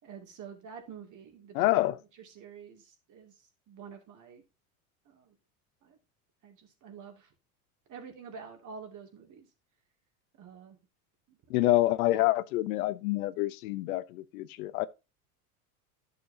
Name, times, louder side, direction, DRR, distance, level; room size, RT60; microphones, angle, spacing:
voice 1, 0.0-1.7 2.1-4.4 5.1-5.3 5.8-6.0 6.4-7.3 7.9-9.5 10.3-10.8 11.3-11.7, right 6 dB, 40° right, 2.6 m, -48 dB
voice 2, 1.5-1.9 11.5-14.9, left 16 dB, 70° left, 0.8 m, -27 dB
11.0 x 6.8 x 2.8 m
hypercardioid pair, 100°, 45 cm